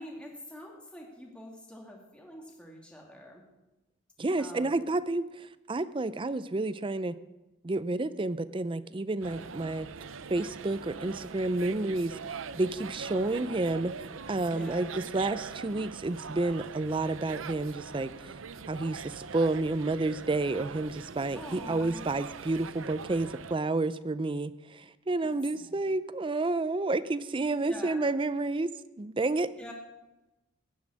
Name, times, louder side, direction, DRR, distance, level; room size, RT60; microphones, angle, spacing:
voice 1, 0.0-3.4 4.4-4.7 9.2-9.4 14.4-15.0 21.3-22.1 25.2-25.8 27.7-28.0 29.6-29.7, left 1 dB, 5° left, -1 dB, 2.2 m, -46 dB
voice 2, 4.2-7.2 7.6-9.9 10.3-12.1 12.5-18.3 18.7-28.7 29.0-29.5, right 2 dB, 25° right, 15 dB, 0.5 m, -30 dB
sound 1, 9.2-23.5, right 5 dB, 85° right, 0.6 m, -42 dB
15.0 x 7.5 x 9.8 m, 1.0 s
head